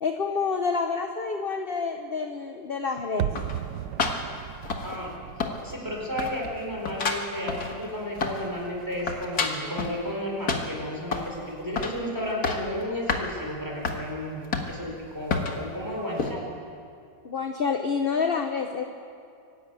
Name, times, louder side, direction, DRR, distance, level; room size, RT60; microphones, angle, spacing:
voice 1, 0.0-3.3 17.2-18.8, left 5 dB, 40° left, 5 dB, 1.0 m, -28 dB
sound 1, 3.2-8.1 8.4-8.5, right 11 dB, 85° right, 1.3 m, -36 dB
sound 2, 3.4-5.2 5.4-5.9 6.2-8.6 8.8-10.0 10.5-11.4 11.8-12.0 12.3-12.7 13.1-13.3 13.8-14.0 14.5-14.9 15.3-15.6 16.2-16.3, left 4 dB, 65° left, 2.1 m, -29 dB
voice 2, 4.8-5.2 5.6-16.6, equal, 10° right, -2 dB, 4.5 m, -33 dB
24.5 x 12.0 x 9.0 m, 2.4 s
omnidirectional pair, 1.8 m